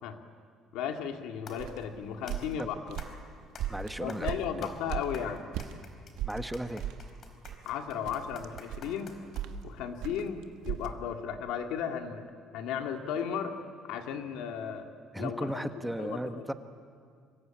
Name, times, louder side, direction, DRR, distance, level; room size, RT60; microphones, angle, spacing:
voice 1, 0.7-3.0 4.0-5.5 7.7-9.2 9.6-12.3 12.5-13.6 13.9-14.9 15.2-16.5, left 8 dB, 85° left, 5 dB, 2.1 m, -35 dB
sound 1, 1.5-9.8, left 4 dB, 45° left, 4.1 m, -51 dB
sound 2, 1.6-5.8 6.2-10.9, right 11 dB, 85° right, 1.3 m, -38 dB
voice 2, 3.7-4.3 4.6-4.7 6.2-6.9 15.1-16.5, right 1 dB, 5° right, 8 dB, 1.1 m, -35 dB
25.5 x 22.0 x 8.9 m, 2.1 s
cardioid pair, 120°, 0 cm